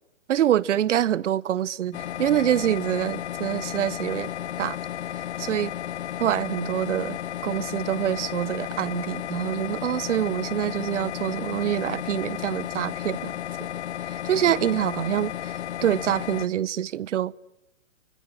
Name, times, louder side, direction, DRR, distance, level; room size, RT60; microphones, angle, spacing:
voice 1, 0.3-4.3 4.6-4.8 5.4-5.7 6.2-7.2 7.4-13.3 14.0-17.3, right 11 dB, 60° right, 0.9 m, -26 dB
sound 1, 1.9-16.5, left 11 dB, 55° left, 1.1 m, -33 dB
25.0 x 23.5 x 9.9 m
hypercardioid pair, 140°, 40 cm